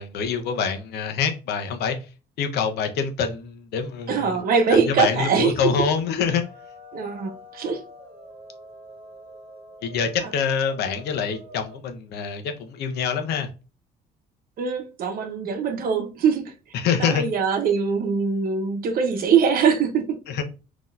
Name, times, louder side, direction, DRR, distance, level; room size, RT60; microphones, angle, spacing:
voice 1, 0.0-2.0 2.4-4.4 4.7-6.4 9.8-13.5 16.7-17.2 20.3-20.4, left 6 dB, 75° left, 0.8 m, -25 dB
voice 2, 4.1-5.5 6.9-7.8 10.2-10.3 14.6-16.5 17.0-20.2, right 6 dB, 60° right, 0.8 m, -22 dB
sound 1, 6.2-11.8, right 1 dB, 35° right, 1.0 m, -45 dB
3.8 x 3.0 x 2.5 m
cardioid pair, 110°, 17 cm